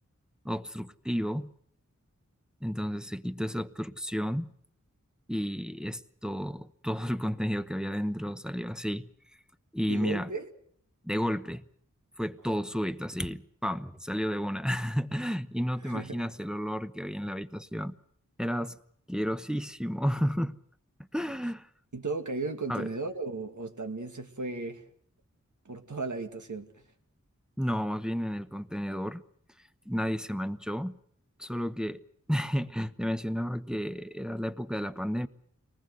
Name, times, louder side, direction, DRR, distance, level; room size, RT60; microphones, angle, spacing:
voice 1, 0.4-1.5 2.6-4.5 5.3-9.1 9.7-10.3 11.0-11.6 12.2-18.0 18.4-18.8 19.1-20.6 21.1-21.7 22.7-22.9 27.6-29.2 29.9-31.0 31.4-32.0 32.3-35.3, equal, ahead, 1.0 m, -32 dB
voice 2, 9.9-10.5 15.8-16.3 21.9-24.8 25.7-26.7, right 3 dB, 75° right, 2.3 m, -35 dB
24.0 x 20.0 x 8.0 m
wide cardioid pair, 50°, 30 cm